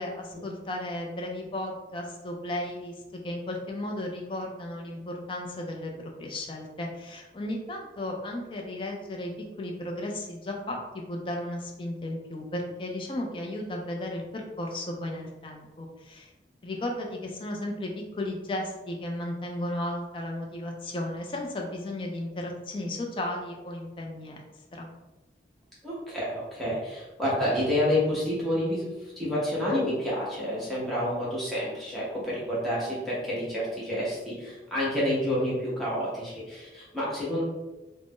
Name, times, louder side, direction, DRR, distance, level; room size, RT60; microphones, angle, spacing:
voice 1, 0.0-2.9 3.2-9.3 9.6-16.3 16.6-24.4 24.7-24.9, left 1 dB, 30° left, 1 dB, 0.4 m, -34 dB
voice 2, 25.8-37.4, left 1 dB, ahead, -8 dB, 0.8 m, -29 dB
2.5 x 2.0 x 3.5 m, 1.1 s
head